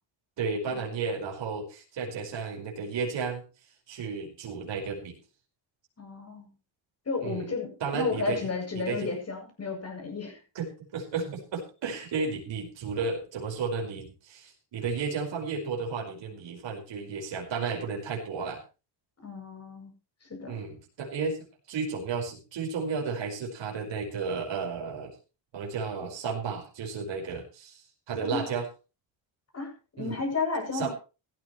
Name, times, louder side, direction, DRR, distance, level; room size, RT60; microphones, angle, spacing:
voice 1, 0.4-3.4 3.9-5.1 7.2-7.5 7.8-8.4 8.7-9.1 10.5-18.6 20.5-21.4 21.7-25.1 25.5-28.6 30.0-30.2 30.7-30.9, right 5 dB, 70° right, 1 dB, 5.1 m, -33 dB
voice 2, 6.0-6.5 7.0-10.4 19.2-19.9 20.2-20.6 28.2-28.5 29.5-30.9, left 4 dB, 30° left, 3 dB, 8.0 m, -33 dB
17.0 x 14.5 x 3.2 m, 0.32 s
cardioid pair, 115°, 46 cm